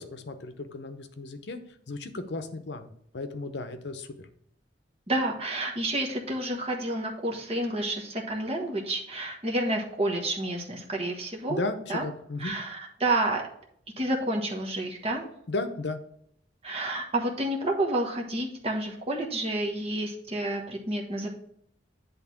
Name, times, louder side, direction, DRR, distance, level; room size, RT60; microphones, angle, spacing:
voice 1, 0.0-1.6 1.9-4.1 11.5-12.6 15.5-16.0, left 3 dB, 70° left, 9 dB, 0.8 m, -34 dB
voice 2, 5.1-11.6 11.9-12.0 12.4-13.4 14.0-15.2 16.6-21.3, right 1 dB, 35° right, 0 dB, 1.2 m, -29 dB
8.3 x 3.5 x 5.8 m, 0.70 s
head